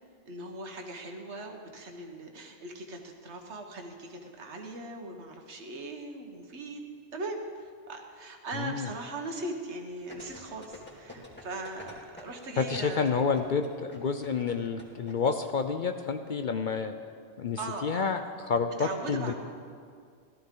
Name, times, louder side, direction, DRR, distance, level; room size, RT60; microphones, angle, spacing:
voice 1, 0.3-6.8 7.1-13.1 17.6-18.1 18.8-19.3, right 2 dB, 75° right, 3 dB, 1.5 m, -39 dB
sound 1, 10.1-15.1 15.4-15.5, left 1 dB, 10° left, 2.4 m, -48 dB
voice 2, 12.6-16.9 17.4-19.3, left 5 dB, 55° left, 7 dB, 0.6 m, -29 dB
17.5 x 13.0 x 3.8 m, 2.2 s
omnidirectional pair, 1.2 m